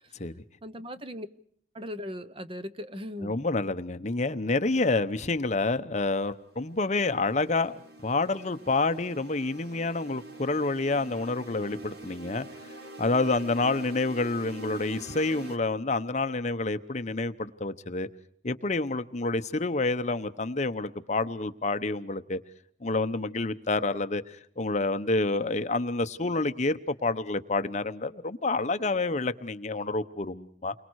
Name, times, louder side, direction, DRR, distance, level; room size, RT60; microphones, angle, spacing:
voice 1, 0.6-1.3 1.7-3.4, left 1 dB, 30° right, 0.9 m, -38 dB
voice 2, 3.2-12.5 13.0-18.1 18.4-22.4 22.8-30.7, left 3 dB, 40° left, 0.9 m, -28 dB
sound 1, 6.5-15.6, right 2 dB, 60° right, 2.2 m, -45 dB
29.5 x 23.5 x 4.8 m
head